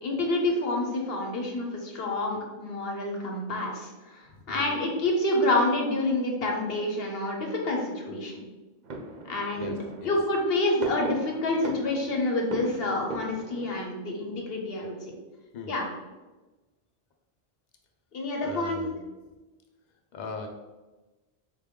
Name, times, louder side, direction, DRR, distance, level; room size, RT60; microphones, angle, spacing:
voice 1, 0.0-8.4 9.2-9.7 10.0-15.0 15.7-15.9 18.1-18.8, left 2 dB, 75° left, 0 dB, 0.9 m, -28 dB
voice 2, 4.3-4.8 9.5-10.2 15.5-15.8 18.4-19.0 20.1-20.5, left 3 dB, 55° left, 3 dB, 0.6 m, -40 dB
sound 1, 8.8-13.8, right 3 dB, 55° right, 0.6 m, -39 dB
3.7 x 2.2 x 3.5 m, 1.2 s
omnidirectional pair, 1.0 m